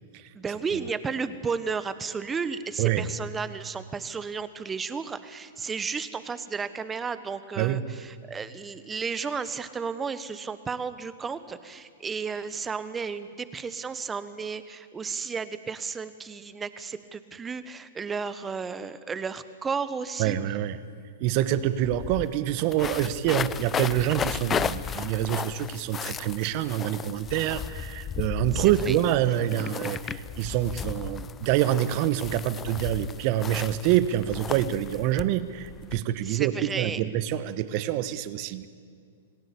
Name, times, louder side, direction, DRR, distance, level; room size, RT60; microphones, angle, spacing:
voice 1, 0.3-20.4 28.5-29.0 36.2-37.0, right 5 dB, 15° right, 13 dB, 1.3 m, -33 dB
voice 2, 20.2-20.8 21.2-38.7, right 12 dB, 45° right, 14 dB, 1.3 m, -26 dB
sound 1, 21.3-21.4 21.6-36.0, left 7 dB, 20° left, 0.6 m, -35 dB
27.5 x 18.5 x 8.6 m, 2.1 s
hypercardioid pair, 115°, 0 cm